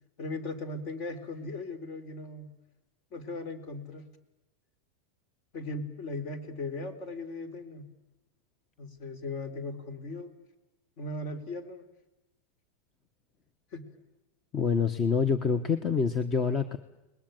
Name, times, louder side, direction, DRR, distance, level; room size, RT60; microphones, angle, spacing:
voice 1, 0.2-2.5 3.1-4.1 5.5-7.9 8.8-10.3 11.0-11.8 13.7-13.9, left 2 dB, 45° left, 11 dB, 3.9 m, -38 dB
voice 2, 14.5-16.8, left 5 dB, 20° left, 11 dB, 1.2 m, -26 dB
29.5 x 21.0 x 9.2 m, 1.0 s
supercardioid pair, 150°, 0 cm